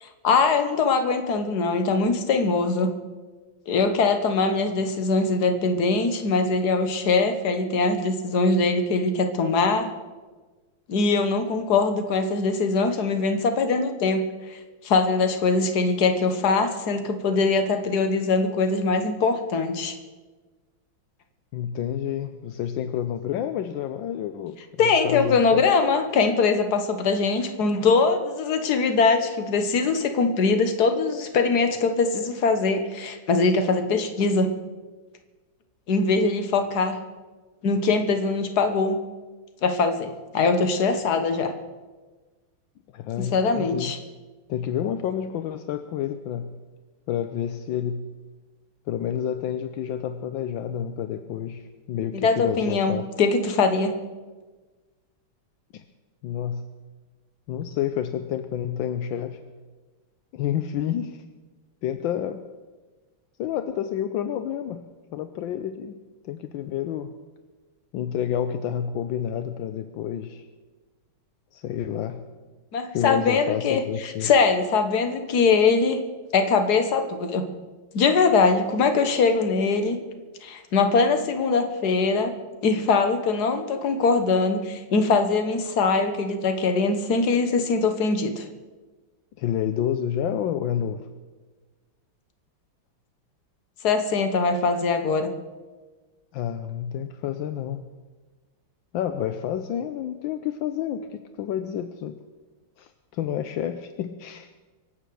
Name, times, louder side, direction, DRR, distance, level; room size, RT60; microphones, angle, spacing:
voice 1, 0.0-2.9 3.7-9.9 10.9-14.6 14.8-19.9 24.8-34.5 35.9-37.0 37.6-39.0 39.6-41.5 43.2-44.0 52.1-54.0 72.7-76.0 76.3-77.4 77.9-80.0 80.4-82.3 82.6-88.5 93.8-95.3, left 4 dB, 55° left, 7 dB, 1.7 m, -22 dB
voice 2, 21.5-25.6 42.9-43.9 44.5-46.5 47.1-48.1 48.9-53.1 55.7-55.8 56.2-56.7 57.5-59.4 60.3-61.2 61.8-62.4 63.4-65.9 66.2-67.1 67.9-70.5 71.5-72.3 72.9-74.3 89.4-91.0 96.3-97.9 98.9-102.2 102.8-104.5, left 9 dB, 75° left, 10 dB, 1.4 m, -29 dB
24.5 x 8.1 x 6.8 m, 1.3 s
omnidirectional pair, 2.2 m